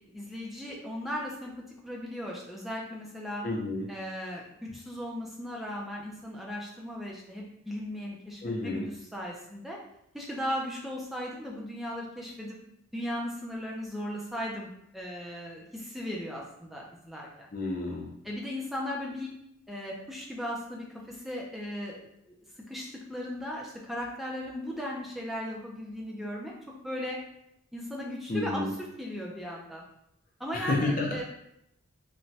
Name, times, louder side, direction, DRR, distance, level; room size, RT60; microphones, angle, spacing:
voice 1, 0.0-1.5 1.8-3.4 3.9-4.4 4.7-9.8 10.1-12.6 12.9-17.5 18.2-19.3 19.7-22.3 22.7-26.5 26.8-27.2 27.7-29.8 30.4-31.2, equal, ahead, -3 dB, 0.4 m, -37 dB
voice 2, 3.4-3.8 8.4-8.8 17.5-18.1 28.3-28.7 30.5-31.1, left 2 dB, 40° left, -1 dB, 0.6 m, -30 dB
3.0 x 2.2 x 2.7 m, 0.78 s
head